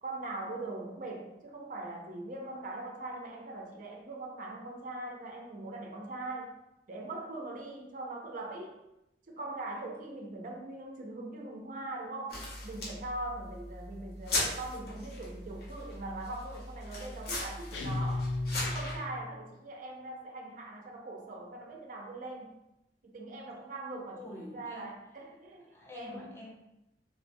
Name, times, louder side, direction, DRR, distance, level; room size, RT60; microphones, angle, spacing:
voice 1, 0.0-6.5 6.9-8.8 9.3-18.3 18.6-22.5 23.0-24.2 24.5-25.6 25.9-26.3, right 2 dB, 45° right, 1 dB, 0.4 m, -41 dB
sound 1, 12.3-19.0, left 2 dB, 60° left, 0.8 m, -38 dB
sound 2, 17.7-19.4, left 2 dB, 90° left, 0.3 m, -34 dB
voice 2, 24.1-24.9 25.7-26.5, left 1 dB, 15° left, -2 dB, 0.5 m, -46 dB
3.0 x 2.1 x 2.6 m, 0.89 s
head